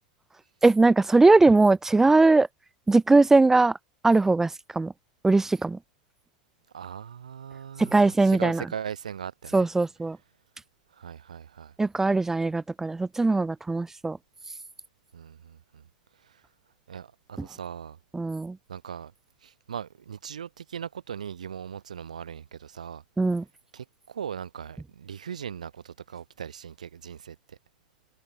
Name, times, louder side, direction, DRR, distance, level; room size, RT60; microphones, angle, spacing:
voice 1, 0.6-2.5 2.9-3.8 4.0-4.9 5.2-5.8 7.8-8.6 9.5-10.2 11.8-14.2 17.4-17.5 18.1-18.6 23.2-23.4, right 3 dB, 10° right, 0.3 m, -20 dB
voice 2, 6.7-9.7 10.9-11.7 15.1-15.8 16.2-16.4 16.9-18.0 18.7-19.1 19.4-23.0 23.7-27.4, right 8 dB, 85° right, 3.2 m, -39 dB
hypercardioid pair, 90°, 4 cm